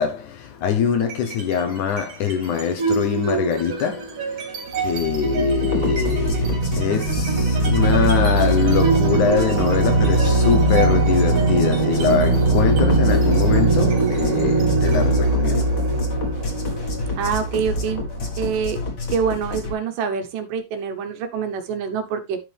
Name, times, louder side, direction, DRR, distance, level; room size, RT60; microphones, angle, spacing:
voice 1, 0.0-15.7, left 7 dB, 70° left, 2.2 m, -23 dB
sound 1, 1.0-1.5 1.9-18.5, right 3 dB, 45° right, 3.0 m, -21 dB
sound 2, 5.6-19.7, left 3 dB, 35° left, 2.0 m, -29 dB
voice 2, 17.2-18.0 18.4-18.8 19.1-22.4, right 7 dB, 70° right, 2.5 m, -25 dB
10.5 x 6.0 x 3.4 m
omnidirectional pair, 4.1 m